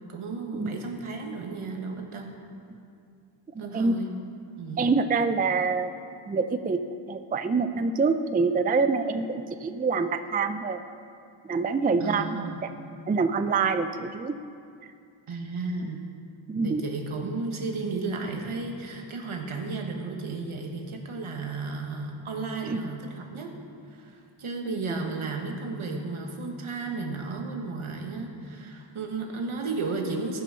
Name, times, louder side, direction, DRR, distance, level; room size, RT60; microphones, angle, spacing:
voice 1, 0.1-2.3 3.6-4.1 4.6-4.9 12.0-12.6 15.3-16.0 16.6-23.5 23.9-30.4, right 3 dB, 75° right, 2 dB, 1.4 m, -33 dB
voice 2, 3.6-4.0 4.8-5.9 6.3-6.8 7.1-10.8 11.4-12.7 13.1-14.4 16.5-16.8 22.7-22.8, right 4 dB, 20° right, 9 dB, 0.3 m, -26 dB
14.5 x 6.1 x 5.6 m, 2.4 s
wide cardioid pair, 70°, 50 cm